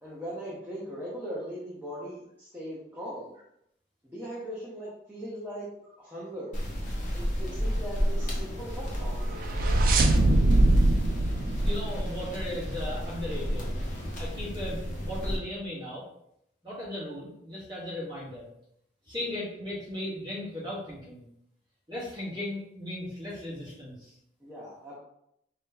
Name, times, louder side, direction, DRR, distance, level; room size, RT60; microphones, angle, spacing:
voice 1, 0.0-3.3 4.0-5.7 6.0-6.5 7.1-9.5 19.2-19.3 24.4-25.0, equal, 10° right, -8 dB, 0.8 m, -39 dB
sound 1, 6.5-15.4, equal, 45° left, 0.9 m, -32 dB
sound 2, 9.0-12.6, right 1 dB, 50° right, 0.3 m, -23 dB
voice 2, 11.6-13.7 14.2-16.0 16.6-18.5 19.1-21.2 21.9-24.1, left 1 dB, 25° right, -9 dB, 1.3 m, -37 dB
3.0 x 2.7 x 3.8 m, 0.76 s
head